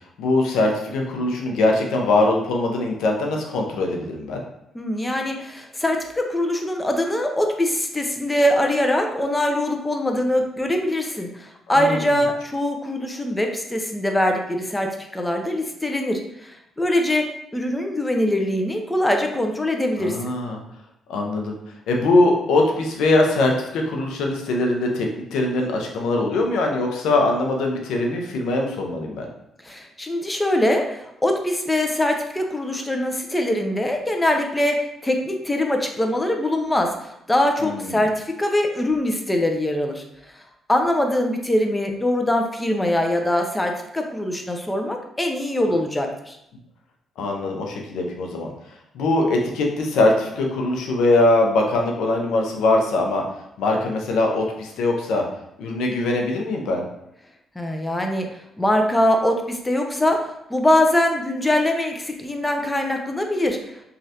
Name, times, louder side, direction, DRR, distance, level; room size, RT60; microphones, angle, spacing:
voice 1, 0.2-4.4 11.7-12.2 20.0-20.6 21.1-21.6 21.9-29.3 37.6-38.0 47.2-48.5 48.9-53.2 53.6-55.2 55.6-56.8, left 2 dB, 85° left, 1 dB, 0.5 m, -22 dB
voice 2, 4.7-17.3 17.5-20.3 29.6-40.0 40.7-46.4 57.6-58.3 58.6-63.6, left 1 dB, 15° left, 3 dB, 0.5 m, -22 dB
3.2 x 2.4 x 2.7 m, 0.80 s
cardioid pair, 90°, 0 cm